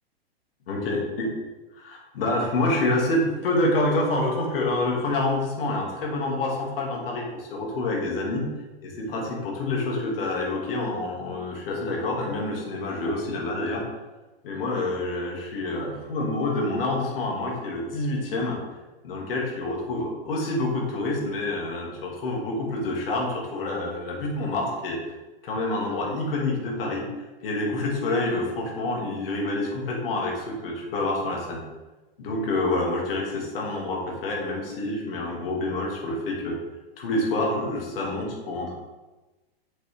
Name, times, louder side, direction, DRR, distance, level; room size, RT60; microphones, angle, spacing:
voice 1, 0.7-1.3 1.8-8.5 8.8-13.8 14.4-18.6 19.0-25.0 25.4-27.1 27.4-31.6 32.2-36.6 37.0-38.8, left 2 dB, 65° left, -1 dB, 2.5 m, -27 dB
7.7 x 6.2 x 3.6 m, 1.1 s
hypercardioid pair, 125°, 31 cm